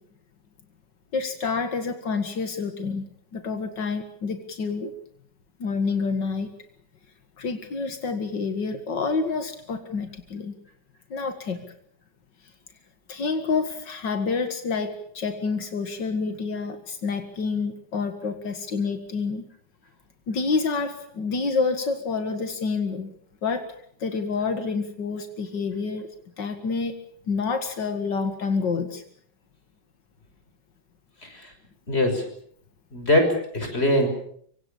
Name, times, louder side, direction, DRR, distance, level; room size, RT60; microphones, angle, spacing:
voice 1, 1.1-3.1 3.3-4.9 5.6-6.5 7.4-10.5 11.1-11.6 13.1-19.4 20.3-23.1 23.4-23.6 24.0-26.1 26.4-26.9 27.3-29.0, left 4 dB, 85° left, 7 dB, 2.6 m, -28 dB
voice 2, 31.2-31.5 31.9-32.3 32.9-34.1, left 1 dB, 35° left, 5 dB, 6.4 m, -22 dB
25.0 x 25.0 x 7.1 m, 0.64 s
omnidirectional pair, 1.9 m